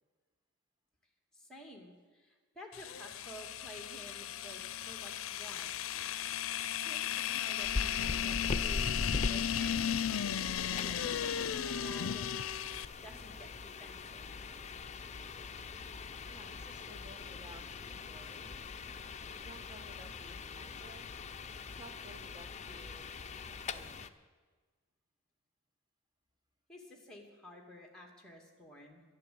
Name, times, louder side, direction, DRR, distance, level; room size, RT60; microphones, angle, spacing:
voice 1, 1.3-5.7 6.8-10.0 10.7-12.3 12.9-14.2 26.7-29.0, equal, 5° left, 1 dB, 2.4 m, -51 dB
sound 1, 2.7-12.8, left 9 dB, 80° left, 0.5 m, -35 dB
sound 2, 7.6-24.1, left 3 dB, 35° left, 0.6 m, -42 dB
voice 2, 16.2-18.6 19.4-21.1 21.8-24.1, right 1 dB, 20° right, 5 dB, 1.4 m, -56 dB
12.5 x 11.0 x 8.6 m, 1.4 s
head